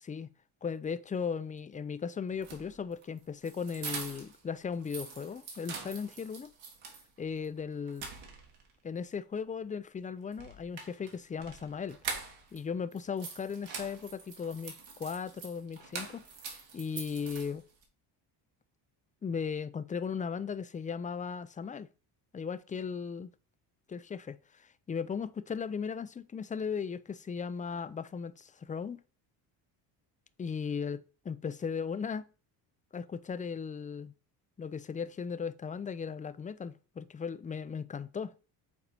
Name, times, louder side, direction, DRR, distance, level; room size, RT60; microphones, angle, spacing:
voice 1, 0.6-6.5 7.2-8.0 8.8-12.0 12.5-16.3 16.7-17.6 19.2-21.9 22.3-23.3 23.9-29.0 30.4-32.3 32.9-34.1 34.6-38.3, left 6 dB, 15° left, 0.4 m, -37 dB
sound 1, 2.3-4.4 4.7-7.1 7.4-7.5 7.9-8.7 10.3-12.6 12.9-17.8, right 5 dB, 65° right, 2.1 m, -44 dB
6.8 x 4.2 x 4.2 m
cardioid pair, 95°, 49 cm